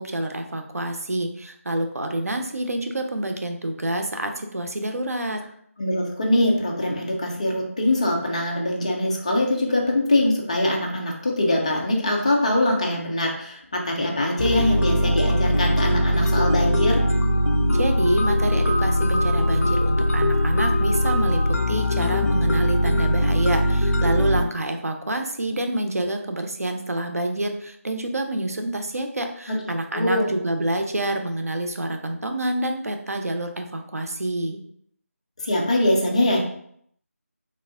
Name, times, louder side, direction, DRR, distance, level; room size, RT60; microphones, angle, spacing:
voice 1, 0.0-5.4 17.7-34.6, right 1 dB, 75° right, 5 dB, 0.6 m, -27 dB
voice 2, 5.8-17.0 29.5-29.6 29.9-30.3 35.4-36.4, left 1 dB, 25° left, 0 dB, 0.5 m, -23 dB
sound 1, 14.4-24.4, equal, 80° left, 0.5 m, -21 dB
3.2 x 2.4 x 3.5 m, 0.68 s
figure-of-eight pair, 165°, 8 cm